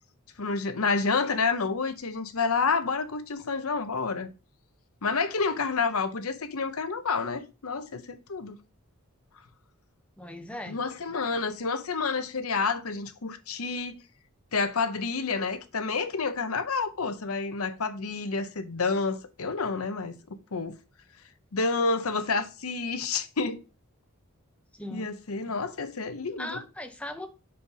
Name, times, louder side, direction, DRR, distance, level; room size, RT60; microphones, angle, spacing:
voice 1, 0.4-4.3 5.0-8.6 10.7-14.0 14.5-20.2 20.5-20.8 21.5-23.6 24.9-26.6, left 4 dB, 80° left, 0.8 m, -29 dB
voice 2, 10.2-10.8 24.7-25.1 26.4-27.3, left 1 dB, 5° left, 0.8 m, -38 dB
5.1 x 4.5 x 5.5 m
head